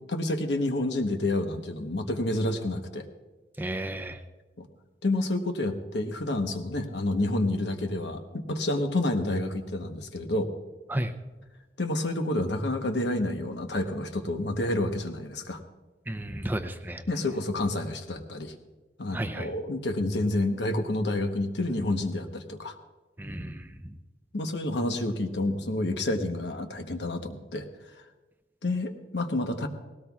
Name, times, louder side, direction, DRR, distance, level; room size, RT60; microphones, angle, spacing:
voice 1, 0.1-3.1 4.6-4.7 5.0-10.5 11.8-15.6 17.1-18.5 19.0-22.7 24.3-27.7 28.6-29.7, left 1 dB, 70° left, 6 dB, 1.1 m, -29 dB
voice 2, 3.6-4.2 10.9-11.1 16.1-17.0 19.1-19.5 23.2-24.0, right 1 dB, 10° right, 6 dB, 0.6 m, -33 dB
19.5 x 17.5 x 2.4 m, 1.2 s
head